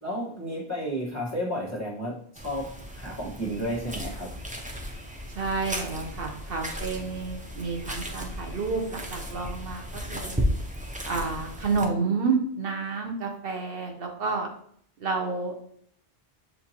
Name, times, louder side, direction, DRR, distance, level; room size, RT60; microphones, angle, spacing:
voice 1, 0.0-4.3, equal, 15° left, -6 dB, 1.3 m, -32 dB
sound 1, 2.3-11.8, equal, 10° right, 0.4 m, -35 dB
voice 2, 5.4-10.4 11.0-14.5 15.0-15.6, right 4 dB, 65° right, 3 dB, 0.9 m, -30 dB
6.6 x 2.7 x 2.8 m, 0.63 s
omnidirectional pair, 1.0 m